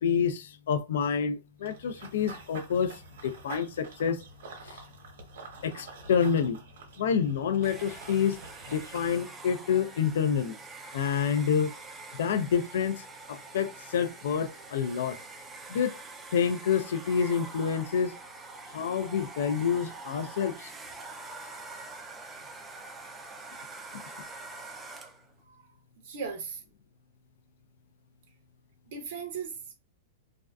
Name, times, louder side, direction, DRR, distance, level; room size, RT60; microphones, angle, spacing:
voice 1, 0.0-4.2 4.6-4.8 5.6-6.6 7.0-8.4 8.7-10.6 10.9-11.7 12.1-15.2 15.7-15.9 16.3-18.2 18.7-20.7, left 7 dB, 75° left, 0.3 m, -28 dB
Run / Bird vocalization bird call bird song, 1.7-9.1, right 3 dB, 80° right, 0.9 m, -47 dB
Domestic sounds home sounds, 7.6-25.3, right 3 dB, 15° right, 0.3 m, -45 dB
voice 2, 25.4-25.7 26.0-26.6 28.9-29.7, right 6 dB, 65° right, 0.6 m, -38 dB
2.4 x 2.3 x 2.2 m
supercardioid pair, 150°, 0 cm